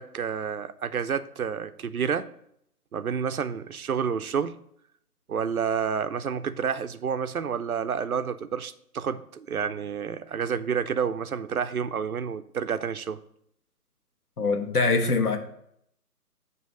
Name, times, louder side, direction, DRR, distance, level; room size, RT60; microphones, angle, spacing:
voice 1, 0.0-2.3 2.9-4.6 5.3-13.2, right 7 dB, 65° right, 11 dB, 0.6 m, -29 dB
voice 2, 14.4-15.4, left 3 dB, 75° left, 4 dB, 1.4 m, -23 dB
9.1 x 3.1 x 6.1 m, 0.70 s
figure-of-eight pair, 150°, 47 cm